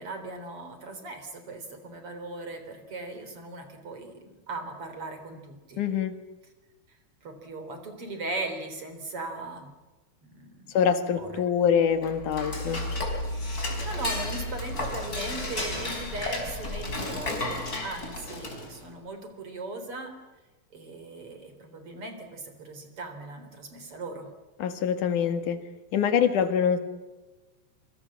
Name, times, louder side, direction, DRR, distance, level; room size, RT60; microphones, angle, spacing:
voice 1, 0.0-5.8 7.2-9.7 10.2-10.8 11.2-11.5 13.9-20.1 20.7-24.3, right 2 dB, 45° right, 7 dB, 4.7 m, -38 dB
voice 2, 5.8-6.3 10.7-12.9 24.6-25.6 25.9-26.8, left 7 dB, 80° left, 9 dB, 3.3 m, -25 dB
Dishes pots and pans / Cutlery silverware, 11.9-18.8, left 2 dB, 30° left, 5.1 m, -32 dB
26.5 x 25.0 x 7.6 m, 1.1 s
omnidirectional pair, 3.5 m